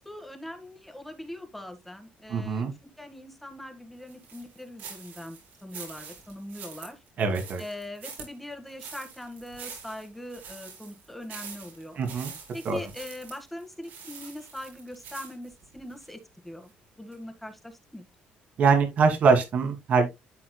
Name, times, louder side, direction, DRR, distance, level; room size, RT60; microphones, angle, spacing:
voice 1, 0.0-2.7 3.0-7.0 7.6-12.0 12.5-16.7 17.0-18.0, left 1 dB, 5° left, 1.7 m, -41 dB
voice 2, 2.3-2.7 7.2-7.6 12.0-12.3 12.6-12.8 18.6-20.1, right 5 dB, 50° right, 2.6 m, -23 dB
sound 1, 4.1-16.1 16.6-16.7 17.1-17.2, right 6 dB, 75° right, 5.2 m, -45 dB
13.0 x 4.7 x 2.3 m
cardioid pair, 130°, 3 cm